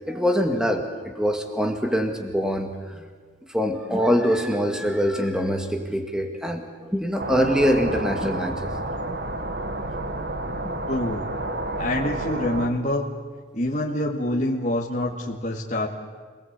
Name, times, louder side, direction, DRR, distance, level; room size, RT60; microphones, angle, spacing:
voice 1, 0.1-3.0 3.5-8.7, equal, 5° right, 4 dB, 2.0 m, -24 dB
sound 1, 7.2-12.7, right 2 dB, 55° right, 1.5 m, -30 dB
voice 2, 10.9-11.3 11.8-13.1 13.5-15.9, left 1 dB, 40° left, -3 dB, 2.3 m, -26 dB
26.5 x 18.5 x 8.4 m, 1.5 s
head